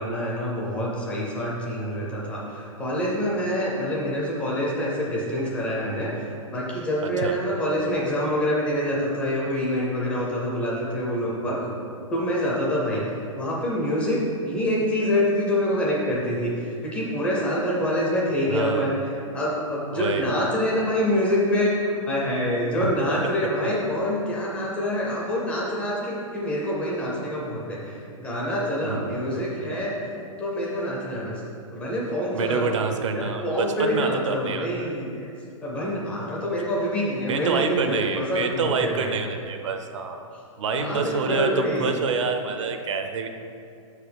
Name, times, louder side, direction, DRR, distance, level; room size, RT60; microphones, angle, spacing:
voice 1, 0.0-11.6 12.1-30.1 30.4-31.4 31.7-32.7 33.1-35.3 35.6-39.1 40.7-42.0, equal, 5° left, -4 dB, 0.4 m, -26 dB
voice 2, 18.5-18.9 19.9-20.3 28.8-29.8 32.3-34.9 37.3-40.2 40.6-43.3, right 5 dB, 60° right, 6 dB, 0.7 m, -27 dB
6.1 x 4.9 x 5.1 m, 2.5 s
hypercardioid pair, 170°, 18 cm